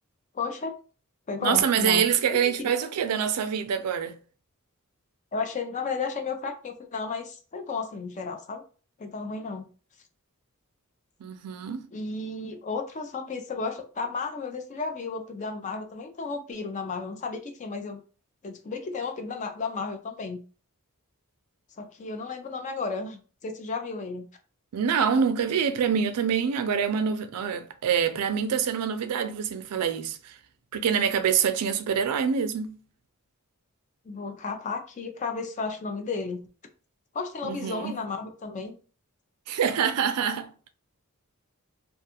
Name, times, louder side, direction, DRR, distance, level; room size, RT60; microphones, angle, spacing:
voice 1, 0.3-0.7 1.3-2.7 5.3-8.6 9.0-9.7 11.9-18.0 18.4-20.4 21.8-24.3 34.1-36.4 37.1-38.7, left 4 dB, 35° left, 0.4 m, -33 dB
voice 2, 1.4-4.2 11.2-11.9 24.7-30.4 30.7-32.8 37.4-38.0 39.5-40.5, right 7 dB, 90° right, 0.4 m, -25 dB
2.4 x 2.3 x 2.8 m
head